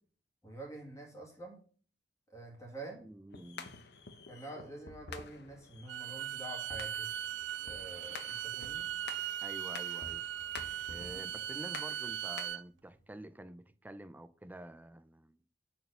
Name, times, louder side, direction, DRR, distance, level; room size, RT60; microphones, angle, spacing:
voice 1, 0.4-1.6 2.3-3.0 4.3-7.1 7.6-8.9 11.0-11.3, right 2 dB, 15° left, 2.0 m, -47 dB
voice 2, 3.0-3.8 9.4-10.3 10.9-15.4, right 1 dB, 10° right, 0.4 m, -49 dB
sound 1, 3.3-12.5, left 5 dB, 60° left, 0.9 m, -50 dB
Bowed string instrument, 5.9-12.6, right 11 dB, 70° right, 0.4 m, -39 dB
6.7 x 4.4 x 6.7 m
head